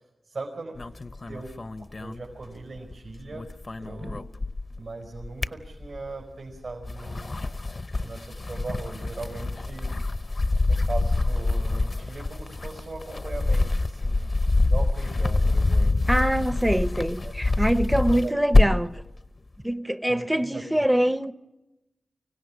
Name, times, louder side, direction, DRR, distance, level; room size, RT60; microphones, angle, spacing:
voice 1, 0.2-0.8 1.3-1.5 1.8-3.5 3.8-4.3 4.8-7.4 8.0-9.9 10.7-15.9 17.2-17.3 17.9-18.3 20.0-21.1, right 3 dB, 75° right, 4.6 m, -39 dB
sound 1, 0.8-2.9 3.2-4.8 5.2-6.2 6.7-19.0, left 2 dB, 45° left, 0.8 m, -25 dB
voice 2, 16.1-19.0 19.6-21.3, right 1 dB, 10° right, 0.8 m, -24 dB
25.0 x 16.5 x 9.8 m
cardioid pair, 60°, 0 cm